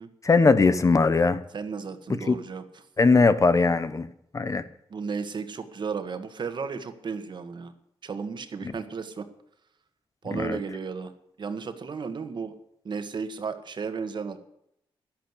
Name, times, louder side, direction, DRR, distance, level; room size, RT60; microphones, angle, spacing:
voice 1, 0.2-1.4 2.3-2.4 3.0-4.1 4.3-4.6 8.6-8.7 10.3-10.6, left 4 dB, 35° left, 13 dB, 0.9 m, -20 dB
voice 2, 1.5-2.6 4.9-7.7 8.0-9.3 10.2-11.1 11.4-12.5 12.8-14.4, right 5 dB, 50° right, 9 dB, 1.7 m, -34 dB
11.5 x 11.0 x 8.3 m, 0.76 s
cardioid pair, 100°, 10 cm